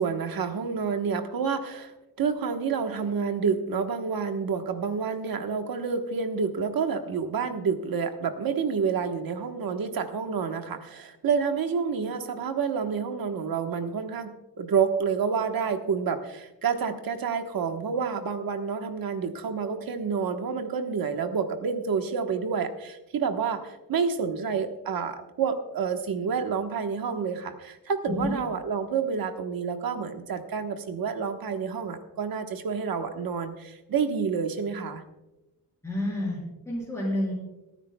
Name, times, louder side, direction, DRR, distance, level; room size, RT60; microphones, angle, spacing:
voice 1, 0.0-1.9 2.2-35.0, right 6 dB, 75° right, 6 dB, 1.3 m, -29 dB
voice 2, 35.8-37.3, left 1 dB, 10° left, -6 dB, 5.5 m, -29 dB
27.5 x 9.9 x 2.3 m, 1.0 s
wide cardioid pair, 150°, 35 cm